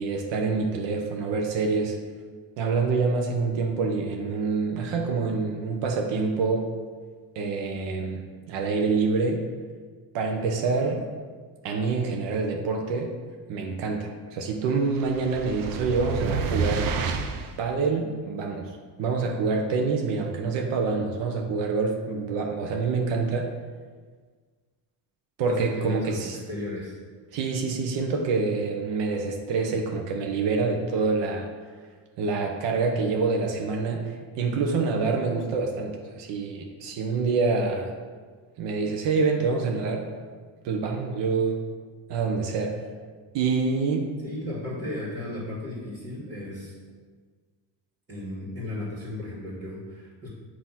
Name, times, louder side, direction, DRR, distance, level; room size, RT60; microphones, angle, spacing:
voice 1, 0.0-2.0 2.6-6.7 7.3-9.4 10.1-11.1 11.6-13.2 13.5-16.9 17.6-18.7 19.0-23.5 25.4-26.4 27.3-31.5 32.2-37.9 38.6-40.1 40.6-41.6 42.1-42.8 43.3-44.1, right 4 dB, 85° right, 1 dB, 0.9 m, -26 dB
sound 1, 14.9-17.6, right 5 dB, 55° right, 0.6 m, -29 dB
voice 2, 25.4-27.0 44.2-46.7 48.1-50.3, left 1 dB, 25° right, -5 dB, 1.7 m, -35 dB
7.6 x 2.9 x 5.8 m, 1.5 s
cardioid pair, 135°, 42 cm